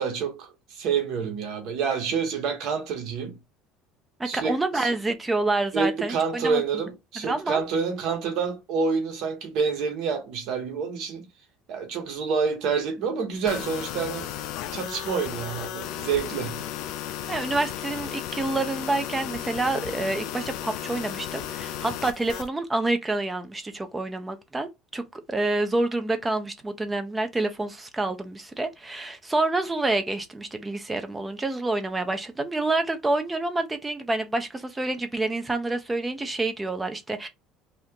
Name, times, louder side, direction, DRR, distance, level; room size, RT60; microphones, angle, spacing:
voice 1, 0.0-3.4 4.2-4.9 5.7-11.3 11.7-14.3 14.7-16.6, right 5 dB, 55° right, 1.0 m, -28 dB
voice 2, 4.2-6.6 7.3-7.6 17.3-37.3, right 2 dB, 10° right, 0.4 m, -28 dB
sound 1, 13.5-22.5, left 11 dB, 60° left, 0.4 m, -34 dB
2.7 x 2.4 x 3.5 m
cardioid pair, 165°, 0 cm